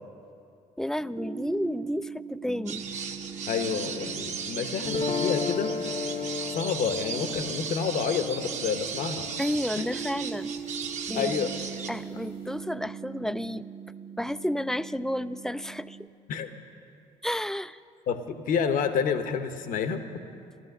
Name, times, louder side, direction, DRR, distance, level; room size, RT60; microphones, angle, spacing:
voice 1, 0.8-2.8 9.4-10.6 11.1-11.5 11.9-13.7 14.2-16.0 17.2-17.8, left 1 dB, 5° left, 15 dB, 0.3 m, -31 dB
sound 1, 1.0-16.1, right 6 dB, 30° right, 0.9 m, -41 dB
sound 2, 2.7-11.9, right 6 dB, 55° right, 1.2 m, -36 dB
voice 2, 3.5-5.7 6.5-9.3 9.8-9.9 11.1-11.5 16.3-16.5 18.1-20.0, left 6 dB, 65° left, 9 dB, 1.0 m, -29 dB
sound 3, 4.8-10.9, left 5 dB, 40° left, 0.8 m, -34 dB
14.0 x 13.0 x 6.6 m, 2.5 s
hypercardioid pair, 65°, 15 cm